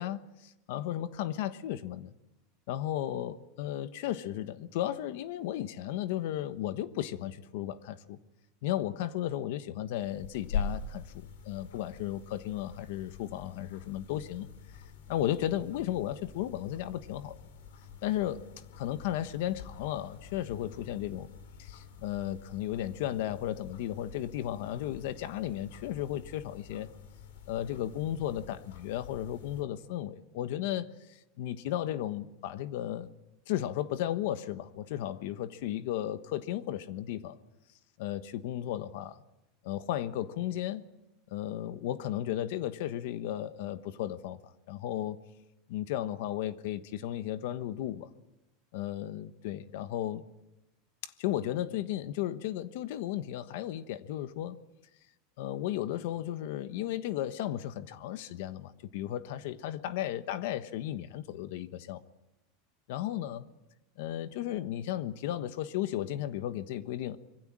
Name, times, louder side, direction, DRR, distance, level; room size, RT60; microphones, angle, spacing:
voice 1, 0.0-2.1 2.7-8.2 8.6-14.5 14.7-14.8 15.1-17.4 18.0-18.4 18.8-21.3 21.6-26.9 27.5-33.1 33.5-37.4 38.0-39.2 39.6-40.8 41.3-45.2 45.7-48.1 48.7-50.2 51.0-54.6 55.4-62.0 62.9-63.4 64.0-67.2, left 12 dB, 55° left, 12 dB, 1.2 m, -34 dB
sound 1, 10.0-29.6, left 6 dB, 85° left, 4.7 m, -45 dB
25.5 x 23.0 x 7.5 m, 0.93 s
supercardioid pair, 175°, 0 cm